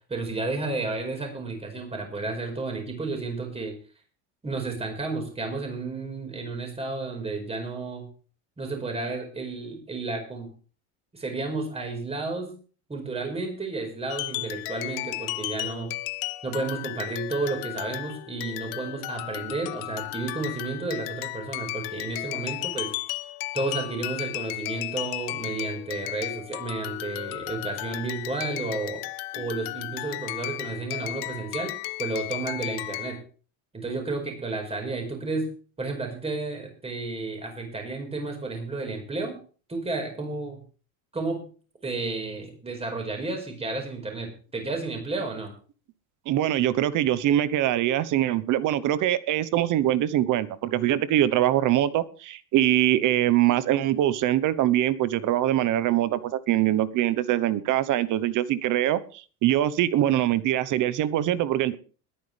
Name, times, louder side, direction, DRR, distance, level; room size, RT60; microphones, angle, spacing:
voice 1, 0.1-3.8 4.4-8.1 8.6-10.5 11.1-12.5 12.9-15.9 16.4-22.9 23.5-29.0 29.3-31.7 32.0-33.2 33.7-35.5 35.8-39.4 39.7-40.6 41.1-41.4 41.8-45.5, right 3 dB, 15° right, 3 dB, 5.1 m, -32 dB
sound 1, 14.1-33.2, left 20 dB, 65° left, 0.8 m, -34 dB
voice 2, 46.3-59.0 59.4-61.8, right 12 dB, 45° right, 16 dB, 1.1 m, -23 dB
21.0 x 9.8 x 3.5 m, 0.38 s
supercardioid pair, 135°, 41 cm